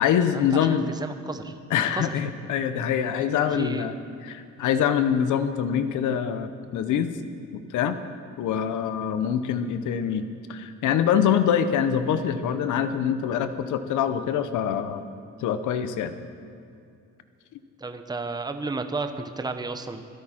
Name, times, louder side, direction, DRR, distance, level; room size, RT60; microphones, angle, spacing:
voice 1, 0.0-0.9 1.7-3.9 4.2-7.2 7.5-8.0 8.4-15.0 15.4-16.1, left 8 dB, 80° left, 11 dB, 0.8 m, -24 dB
voice 2, 0.7-1.5 1.9-2.1 3.6-3.8 17.8-20.0, right 3 dB, 15° right, 7 dB, 0.9 m, -32 dB
17.5 x 13.0 x 4.4 m, 2.5 s
cardioid pair, 90°, 30 cm